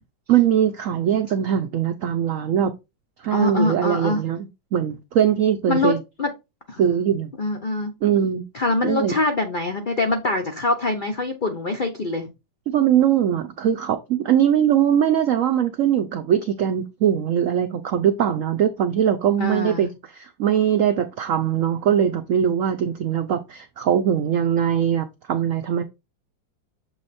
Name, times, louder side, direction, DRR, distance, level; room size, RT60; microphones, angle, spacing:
voice 1, 0.3-2.7 3.2-6.0 6.8-7.3 8.0-8.4 8.8-9.1 12.7-19.9 20.1-25.8, right 9 dB, 90° right, 0.7 m, -21 dB
voice 2, 3.3-4.2 5.7-6.3 6.7-6.8 7.4-7.9 8.5-12.3 19.4-19.9, left 2 dB, 70° left, 0.4 m, -24 dB
7.1 x 3.2 x 4.1 m
omnidirectional pair, 2.1 m